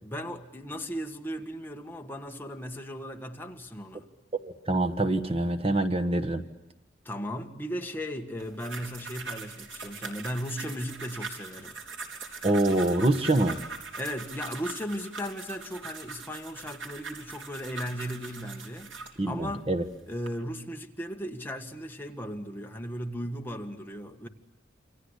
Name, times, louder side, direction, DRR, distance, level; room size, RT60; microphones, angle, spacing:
voice 1, 0.0-4.1 7.1-11.8 13.9-19.0 19.2-19.7 20.1-24.3, equal, 10° left, 1.8 m, -36 dB
voice 2, 4.3-6.4 12.4-13.6 19.2-19.8, right 2 dB, 30° right, 1.4 m, -25 dB
sound 1, 8.4-19.2 19.8-20.3, right 4 dB, 75° right, 3.9 m, -41 dB
28.5 x 25.5 x 8.2 m
head